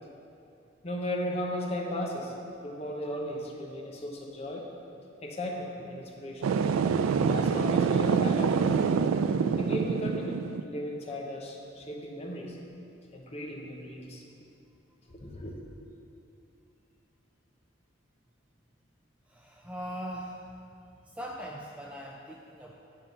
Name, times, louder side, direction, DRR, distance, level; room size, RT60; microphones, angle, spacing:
voice 1, 0.8-2.3 2.6-4.7 5.2-6.4 7.1-8.8 9.6-10.4 10.6-12.6 13.1-14.3 15.1-15.5, left 1 dB, 30° left, -1 dB, 0.9 m, -35 dB
sound 1, 6.4-10.6, right 6 dB, 90° right, 0.3 m, -26 dB
voice 2, 19.3-20.4 21.1-22.7, equal, 5° right, -1 dB, 0.4 m, -40 dB
9.2 x 3.8 x 6.6 m, 2.7 s
head